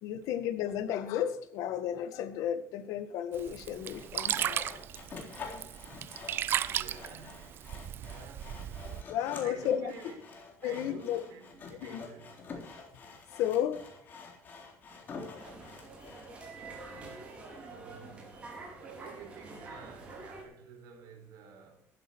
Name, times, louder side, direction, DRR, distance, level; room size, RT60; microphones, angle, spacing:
voice 1, 0.0-4.7 9.1-9.9 10.6-11.2 11.8-12.0 13.3-13.9 16.0-16.2, left 10 dB, 85° left, 1.6 m, -33 dB
Sink (filling or washing), 3.3-9.0, right 10 dB, 40° right, 0.5 m, -36 dB
Sawing, 3.8-16.3, left 4 dB, 35° left, 3.6 m, -47 dB
voice 2, 6.1-7.6 7.9-8.6 9.0-9.2 9.4-12.5 16.7-21.9, right 6 dB, 85° right, 4.5 m, -51 dB
sound 1, 15.4-20.4, right 3 dB, 20° right, 4.4 m, -47 dB
14.5 x 12.0 x 4.6 m
cardioid pair, 175°, 6 cm